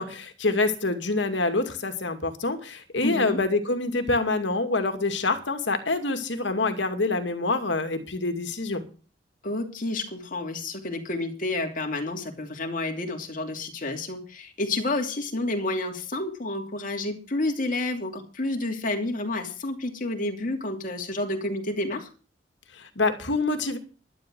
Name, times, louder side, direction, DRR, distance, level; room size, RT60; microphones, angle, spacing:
voice 1, 0.0-8.8 22.8-23.8, left 3 dB, 70° left, 7 dB, 2.4 m, -26 dB
voice 2, 3.0-3.4 9.4-22.1, left 2 dB, 45° left, 3 dB, 2.8 m, -30 dB
11.5 x 11.5 x 6.2 m, 0.37 s
head